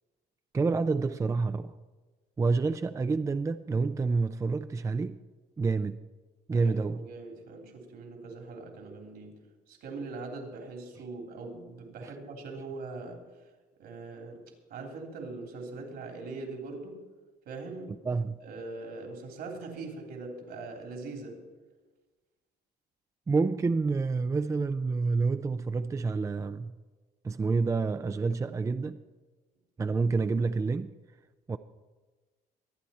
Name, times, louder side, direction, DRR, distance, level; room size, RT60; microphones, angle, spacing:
voice 1, 0.5-1.7 2.4-5.2 5.6-6.0 6.5-7.0 12.0-12.1 18.0-18.4 23.3-26.7 27.2-29.0 29.8-30.9 31.5-31.6, right 4 dB, 20° right, 0.4 m, -28 dB
voice 2, 6.5-9.3 9.7-13.2 13.8-14.4 14.7-17.0 17.4-18.0 18.4-21.4, right 3 dB, 70° right, 3.4 m, -41 dB
23.5 x 9.4 x 4.3 m
cardioid pair, 110°, 17 cm